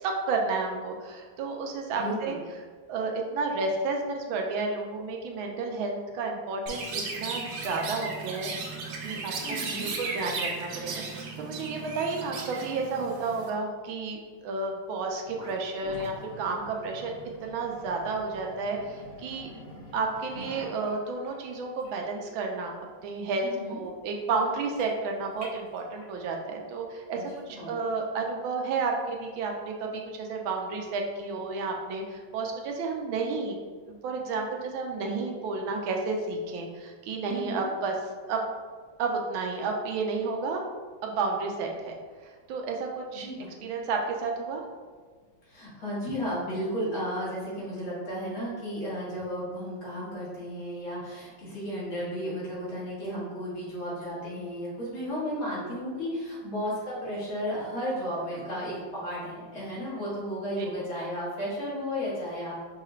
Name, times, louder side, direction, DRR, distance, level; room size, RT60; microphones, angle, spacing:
voice 1, 0.0-2.3 2.9-8.7 9.0-17.1 17.4-19.5 19.9-22.7 23.0-27.2 27.5-33.6 33.9-37.9 38.3-38.4 39.0-40.6 41.0-43.3 43.6-44.6 55.6-55.7 60.6-60.7, right 4 dB, 90° right, 1 dB, 1.4 m, -31 dB
voice 2, 2.0-2.4 9.4-9.9 23.4-23.8 27.1-27.2 27.5-27.8 37.3-37.6 43.1-43.6 45.4-62.5, equal, 80° left, -8 dB, 2.5 m, -34 dB
Chirp tweet, 6.7-13.5, right 4 dB, 70° right, 0.8 m, -35 dB
sound 1, 15.2-26.2, equal, 35° left, 1.2 m, -47 dB
5.5 x 2.4 x 3.1 m, 1.5 s
omnidirectional pair, 2.1 m